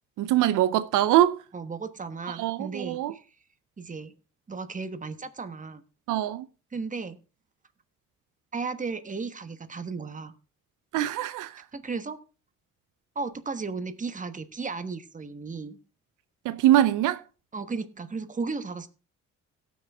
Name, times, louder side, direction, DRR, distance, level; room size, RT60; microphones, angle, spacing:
voice 1, 0.2-1.4 2.4-3.1 6.1-6.5 10.9-11.6 16.4-17.2, right 13 dB, 85° right, 0.6 m, -23 dB
voice 2, 1.5-3.2 3.8-4.2 4.5-5.8 6.7-7.2 8.5-10.3 11.7-12.2 13.1-15.8 17.5-18.9, right 4 dB, 25° right, 1.2 m, -35 dB
17.5 x 6.4 x 3.5 m
cardioid pair, 90°, 30 cm